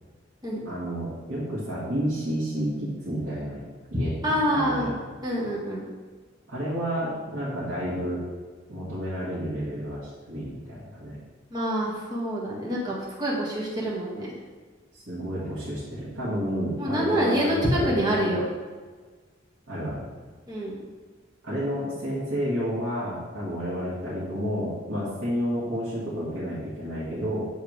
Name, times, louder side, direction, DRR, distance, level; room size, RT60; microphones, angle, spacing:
voice 1, 0.6-3.6 3.9-4.9 6.5-8.2 8.7-11.1 14.9-18.4 19.7-20.0 21.4-27.4, equal, 70° right, -10 dB, 1.9 m, -30 dB
voice 2, 4.2-4.9 5.2-5.9 11.5-14.3 16.8-18.5 20.5-20.8, equal, 20° right, -6 dB, 1.7 m, -26 dB
7.1 x 3.6 x 4.8 m, 1.4 s
head